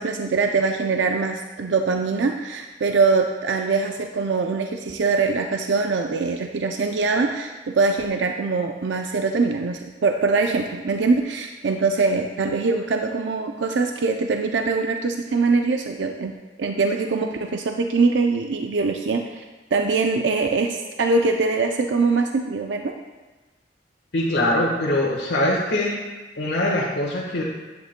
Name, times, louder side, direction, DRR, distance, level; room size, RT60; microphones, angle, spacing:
voice 1, 0.0-19.4 19.7-22.9, right 4 dB, 85° right, 4 dB, 0.5 m, -23 dB
voice 2, 24.1-25.9 26.4-27.4, left 1 dB, 85° left, -5 dB, 1.3 m, -22 dB
11.0 x 8.7 x 2.2 m, 1.2 s
head